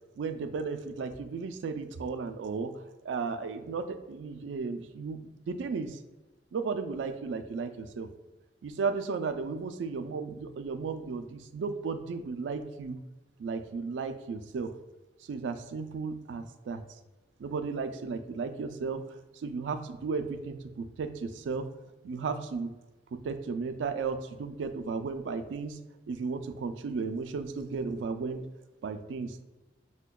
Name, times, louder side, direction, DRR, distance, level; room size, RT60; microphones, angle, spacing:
voice 1, 0.2-2.7 3.1-5.2 5.5-6.0 6.5-8.1 8.6-13.0 13.4-14.7 15.3-16.8 17.4-19.0 19.4-21.7 22.0-22.7 23.2-25.8 26.1-28.5 28.8-29.4, right 4 dB, 85° right, 9 dB, 0.3 m, -34 dB
5.8 x 2.1 x 2.2 m, 1.1 s
head